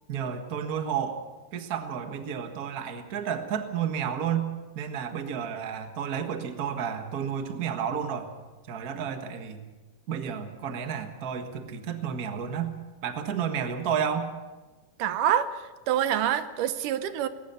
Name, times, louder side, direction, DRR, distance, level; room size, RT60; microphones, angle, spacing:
voice 1, 0.1-1.2 1.5-8.3 8.7-9.6 10.1-12.7 13.0-14.3, right 8 dB, 40° right, 6 dB, 1.5 m, -31 dB
voice 2, 15.0-17.3, right 10 dB, 85° right, 12 dB, 2.5 m, -26 dB
19.5 x 19.5 x 6.9 m, 1.2 s
omnidirectional pair, 3.6 m